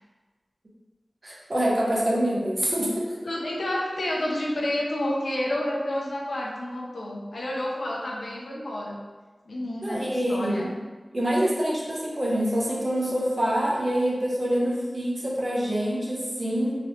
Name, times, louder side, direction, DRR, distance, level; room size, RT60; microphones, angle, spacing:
voice 1, 1.2-3.1 9.8-10.7 11.1-16.7, equal, 40° right, -5 dB, 0.8 m, -25 dB
voice 2, 3.2-9.0 9.5-10.7, left 1 dB, 85° left, -3 dB, 0.6 m, -30 dB
3.0 x 2.9 x 2.8 m, 1.3 s
wide cardioid pair, 70°, 0 cm